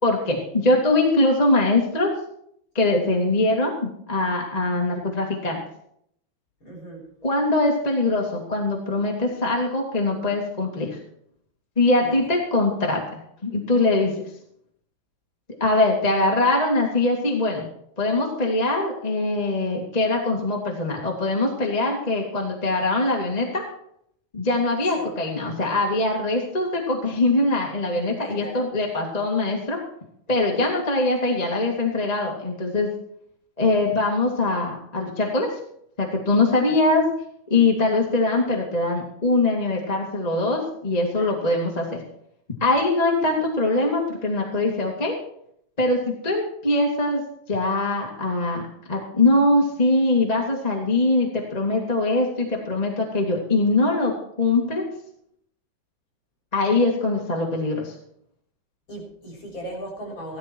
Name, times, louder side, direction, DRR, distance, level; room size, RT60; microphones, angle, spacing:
voice 1, 0.0-2.1 2.7-5.6 7.2-11.0 11.7-14.2 15.6-17.7 18.0-23.6 24.3-29.8 30.3-32.9 33.6-35.5 36.0-37.1 37.5-42.0 42.6-45.1 45.8-47.2 47.5-48.6 48.9-54.1 54.4-54.8 56.5-57.9, left 2 dB, 15° left, -1 dB, 1.6 m, -22 dB
voice 2, 6.6-7.1 12.0-12.3 24.9-25.2 28.3-28.7 36.7-36.9 41.2-41.4 58.9-60.4, right 1 dB, 30° left, -3 dB, 7.2 m, -37 dB
17.0 x 13.0 x 4.6 m, 0.70 s
omnidirectional pair, 4.1 m